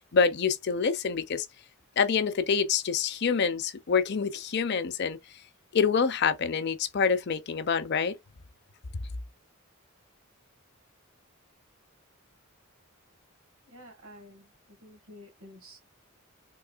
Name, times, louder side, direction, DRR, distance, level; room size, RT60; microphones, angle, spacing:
voice 1, 0.0-1.5 2.0-5.2 5.7-8.2, left 6 dB, 55° left, 0.5 m, -26 dB
voice 2, 13.7-14.5 14.8-15.9, equal, 85° right, 2.0 m, -50 dB
3.7 x 2.8 x 2.4 m
head